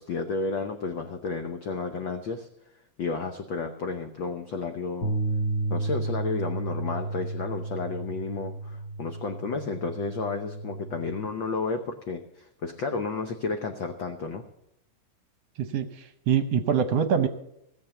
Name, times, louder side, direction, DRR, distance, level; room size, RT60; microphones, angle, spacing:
voice 1, 0.0-2.5 3.0-5.1 5.7-14.4, left 4 dB, 75° left, 6 dB, 1.1 m, -32 dB
sound 1, 5.0-11.3, right 2 dB, 50° left, 1.5 m, -32 dB
voice 2, 15.6-17.3, right 7 dB, 70° right, 10 dB, 1.7 m, -24 dB
17.5 x 7.4 x 7.0 m, 0.80 s
omnidirectional pair, 3.4 m